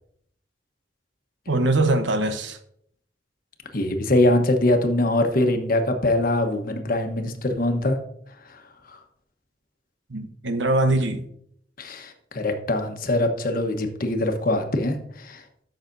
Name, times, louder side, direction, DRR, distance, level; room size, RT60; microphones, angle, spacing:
voice 1, 1.5-2.6 10.1-11.2, right 2 dB, 85° right, 8 dB, 1.0 m, -22 dB
voice 2, 3.7-8.0 8.5-8.6 8.9-9.0 11.8-15.4, left 1 dB, 50° left, 5 dB, 1.1 m, -23 dB
13.0 x 6.5 x 2.7 m, 0.68 s
head